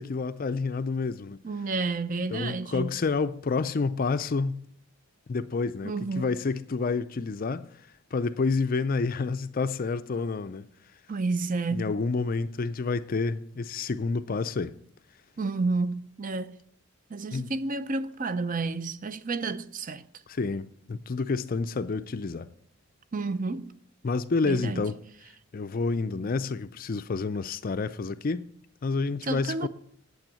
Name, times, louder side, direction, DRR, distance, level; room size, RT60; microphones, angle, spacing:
voice 1, 0.0-1.4 2.3-4.6 5.3-10.7 11.7-14.7 17.3-17.5 20.3-22.5 24.0-25.0 25.5-28.5 28.8-29.7, left 4 dB, 40° left, 0.4 m, -29 dB
voice 2, 1.4-2.9 5.8-6.3 11.1-11.9 15.4-16.6 17.1-20.0 23.1-23.7 24.4-24.8 29.2-29.7, right 3 dB, 35° right, 0.5 m, -30 dB
9.0 x 7.7 x 9.0 m
head